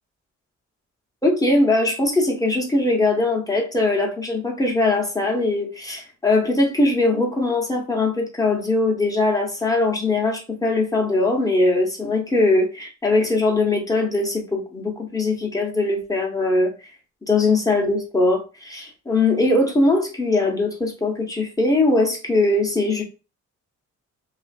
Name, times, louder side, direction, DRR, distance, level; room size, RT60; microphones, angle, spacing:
voice 1, 1.2-16.7 17.3-23.0, left 2 dB, 10° left, 1 dB, 0.7 m, -21 dB
2.4 x 2.4 x 2.4 m, 0.31 s
cardioid pair, 90°, 30 cm